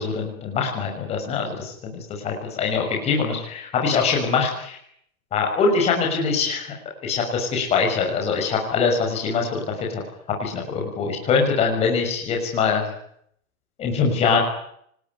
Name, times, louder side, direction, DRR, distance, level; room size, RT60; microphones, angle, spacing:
voice 1, 0.0-4.8 5.3-6.7 7.0-10.0 10.4-12.9 13.8-14.4, left 5 dB, 15° left, 0 dB, 6.3 m, -23 dB
28.0 x 20.5 x 9.7 m, 0.69 s
hypercardioid pair, 175°, 42 cm